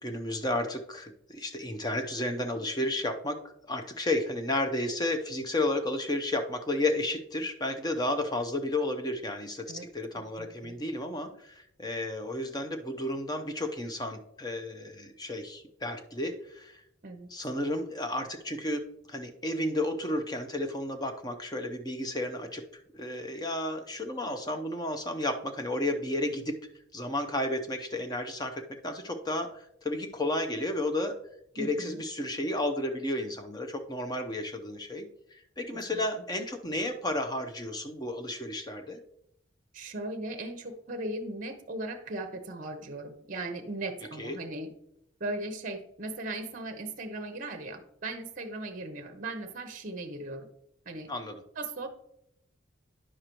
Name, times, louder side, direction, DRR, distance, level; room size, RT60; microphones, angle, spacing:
voice 1, 0.0-16.8 17.3-18.8 19.1-22.6 22.9-26.5 26.9-31.1 31.5-39.0 44.2-44.4 51.1-51.4, left 1 dB, 20° left, 6 dB, 0.7 m, -32 dB
voice 2, 10.2-10.8 17.0-17.3 31.6-32.0 35.9-36.0 39.7-44.7 45.2-50.5 50.9-51.1 51.6-51.9, right 2 dB, 40° right, 7 dB, 0.8 m, -38 dB
9.9 x 6.5 x 3.0 m, 0.77 s
head